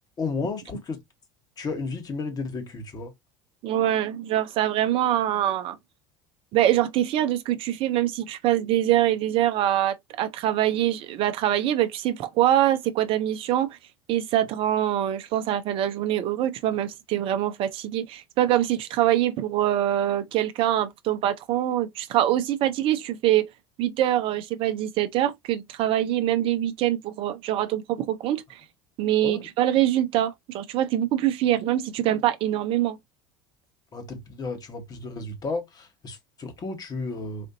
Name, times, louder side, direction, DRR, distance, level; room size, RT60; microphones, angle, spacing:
voice 1, 0.2-1.0 1.6-3.1 29.2-29.5 33.9-37.5, left 3 dB, 35° left, 1.3 m, -33 dB
voice 2, 3.6-5.8 6.5-13.8 14.1-23.5 23.8-28.6 29.0-33.0, right 12 dB, 55° right, 0.6 m, -24 dB
4.3 x 2.5 x 2.6 m
hypercardioid pair, 75°, 11 cm